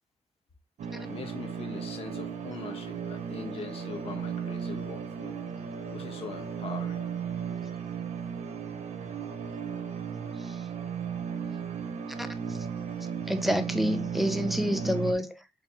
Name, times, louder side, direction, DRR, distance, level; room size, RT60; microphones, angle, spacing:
sound 1, 0.8-15.1, right 7 dB, 75° right, 0.6 m, -35 dB
voice 1, 1.0-5.4 5.9-7.0, left 4 dB, 50° left, 0.8 m, -42 dB
voice 2, 12.2-12.6 13.3-15.4, equal, ahead, 0.3 m, -29 dB
4.9 x 2.4 x 2.7 m
wide cardioid pair, 170°, 12 cm